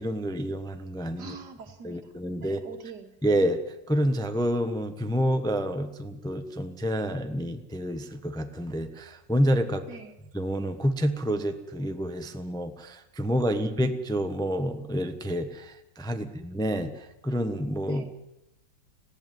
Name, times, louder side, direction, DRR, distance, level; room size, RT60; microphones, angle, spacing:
voice 1, 0.0-1.4 1.8-2.6 3.2-3.6 3.9-9.9 10.3-18.0, equal, 5° left, 8 dB, 0.8 m, -28 dB
voice 2, 1.2-2.0 2.4-3.1 9.9-10.1 16.2-16.4 17.9-18.1, right 5 dB, 65° right, 6 dB, 2.3 m, -44 dB
19.0 x 15.5 x 9.2 m, 0.91 s
omnidirectional pair, 1.9 m